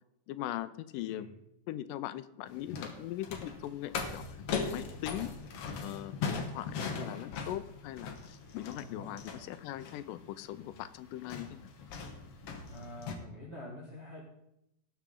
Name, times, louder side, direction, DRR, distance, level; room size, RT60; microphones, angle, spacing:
voice 1, 0.3-1.4 1.7-4.4 4.7-5.4 5.8-11.7, left 13 dB, 85° left, 13 dB, 2.2 m, -40 dB
sound 1, 2.5-13.1, left 5 dB, 60° left, 1.8 m, -40 dB
voice 2, 6.8-7.1 8.8-9.1 12.7-14.2, equal, 30° right, -2 dB, 1.4 m, -46 dB
19.0 x 7.0 x 3.7 m, 0.80 s
omnidirectional pair, 3.8 m